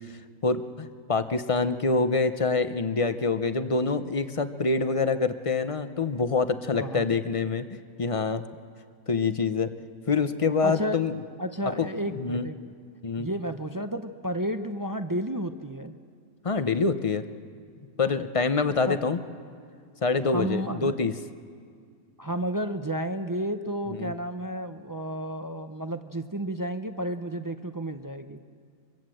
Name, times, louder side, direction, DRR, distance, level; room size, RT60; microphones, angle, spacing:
voice 1, 0.4-8.4 9.1-9.7 10.1-11.1 12.1-12.5 13.0-13.3 16.4-17.2 18.0-19.2 20.0-21.1 23.9-24.1, left 4 dB, 30° left, 10 dB, 0.6 m, -26 dB
voice 2, 6.7-7.1 10.6-11.0 11.4-12.6 13.2-15.9 18.9-19.0 20.3-21.0 22.2-28.4, right 1 dB, 30° right, 8 dB, 0.4 m, -32 dB
24.5 x 24.0 x 7.8 m, 2.1 s
omnidirectional pair, 1.5 m